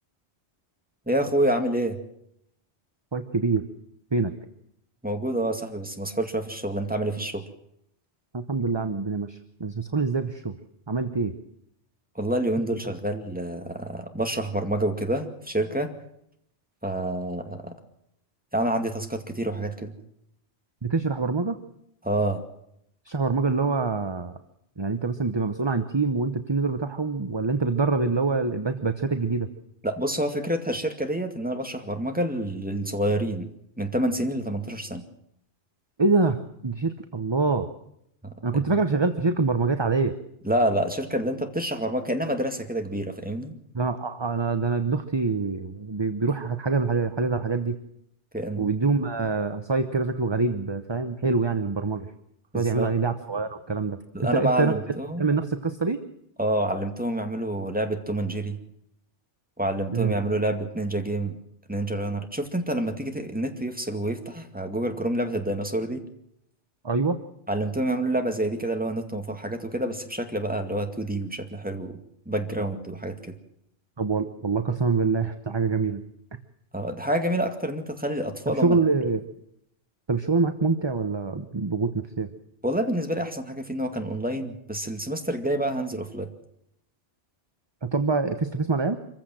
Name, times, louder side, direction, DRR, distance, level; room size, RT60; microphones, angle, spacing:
voice 1, 1.1-2.0 5.0-7.4 12.2-15.9 16.8-17.7 18.5-19.9 22.0-22.4 29.8-33.5 33.8-35.0 38.2-38.3 40.4-43.6 48.3-48.7 52.5-52.9 54.1-55.3 56.4-58.6 59.6-61.4 61.7-66.0 67.5-72.0 72.3-73.3 76.7-78.8 82.6-86.3, right 1 dB, 5° right, 5 dB, 2.2 m, -28 dB
voice 2, 3.1-3.7 4.1-4.3 8.3-10.6 10.9-11.3 20.8-21.6 23.1-24.4 24.8-29.5 36.0-37.7 38.4-40.1 43.7-47.8 48.6-52.1 52.5-54.7 55.2-56.0 59.9-60.1 66.8-67.2 74.0-76.0 78.5-79.2 80.1-82.3 87.8-89.0, right 4 dB, 25° right, 9 dB, 0.9 m, -25 dB
25.5 x 15.0 x 7.7 m, 0.76 s
omnidirectional pair, 1.2 m